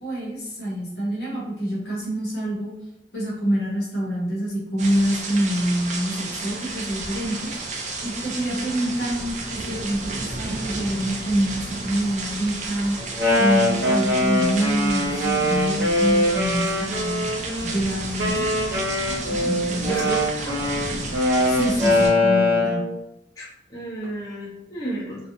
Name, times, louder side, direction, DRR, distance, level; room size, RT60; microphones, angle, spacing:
voice 1, 0.0-2.7 3.1-7.5 8.0-13.0 13.4-17.3 17.6-18.5 19.4-20.1 21.5-22.8, equal, 65° left, -5 dB, 1.0 m, -26 dB
sound 1, 4.8-22.1, right 3 dB, 40° right, 0.4 m, -32 dB
Wind instrument woodwind instrument, 13.0-17.7 18.2-22.9, left 1 dB, 65° right, 0.9 m, -22 dB
voice 2, 19.4-20.5 23.4-25.2, right 2 dB, 20° left, -9 dB, 0.8 m, -33 dB
2.6 x 2.3 x 2.7 m, 0.85 s
head